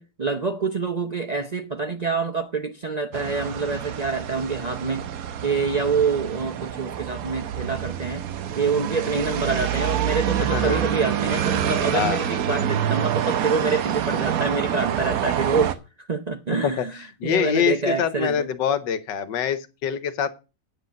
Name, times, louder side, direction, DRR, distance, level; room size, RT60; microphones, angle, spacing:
voice 1, 0.0-5.0 5.4-8.2 8.6-18.5, right 4 dB, 90° right, 0.3 m, -26 dB
sound 1, 3.1-15.8, right 10 dB, 60° right, 1.1 m, -27 dB
voice 2, 10.5-10.8 11.9-12.3 16.6-16.8 17.2-20.3, left 9 dB, 75° left, 1.5 m, -24 dB
9.0 x 8.0 x 5.2 m
omnidirectional pair, 2.0 m